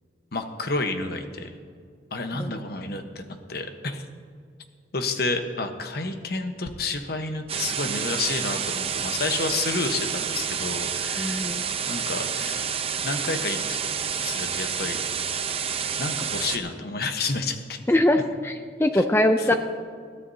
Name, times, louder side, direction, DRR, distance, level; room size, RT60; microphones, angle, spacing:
voice 1, 0.3-1.5 2.1-4.1 4.9-11.5 11.9-12.7 13.0-13.8 14.2-15.0 16.0-17.8 18.9-19.0 19.4-19.6, left 3 dB, 60° left, 6 dB, 1.1 m, -30 dB
sound 1, 7.5-16.6, right 7 dB, 35° right, 0.7 m, -29 dB
voice 2, 11.2-11.7 17.9-19.5, left 1 dB, 15° left, 6 dB, 0.4 m, -22 dB
21.0 x 14.5 x 2.8 m, 2.1 s
head